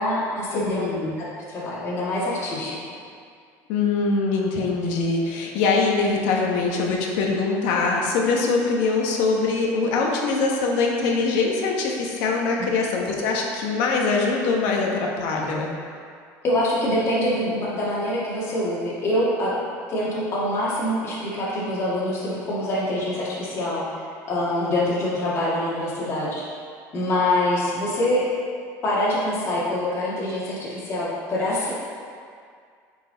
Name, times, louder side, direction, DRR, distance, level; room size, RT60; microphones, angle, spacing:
voice 1, 0.0-0.9 1.2-2.8 12.6-12.7 16.4-19.5 19.9-26.4 26.9-28.3 28.8-31.7, left 1 dB, 40° left, -8 dB, 2.0 m, -25 dB
voice 2, 0.5-1.1 3.7-15.7 24.6-24.8, left 4 dB, 80° left, 0 dB, 1.2 m, -23 dB
9.3 x 4.7 x 4.0 m, 2.2 s
cardioid pair, 150°, 7 cm